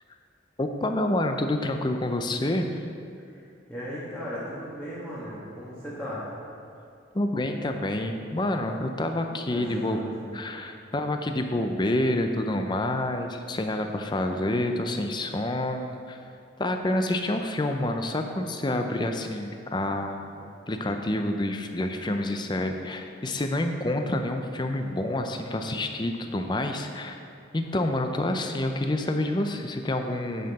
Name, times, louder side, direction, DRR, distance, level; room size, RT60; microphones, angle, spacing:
voice 1, 0.6-2.8 7.1-10.0 10.3-16.2 16.6-27.2 27.5-30.5, left 1 dB, 25° left, 5 dB, 0.5 m, -28 dB
voice 2, 3.3-6.3 9.5-10.4, equal, 5° left, -10 dB, 1.3 m, -37 dB
10.0 x 6.6 x 4.1 m, 2.5 s
head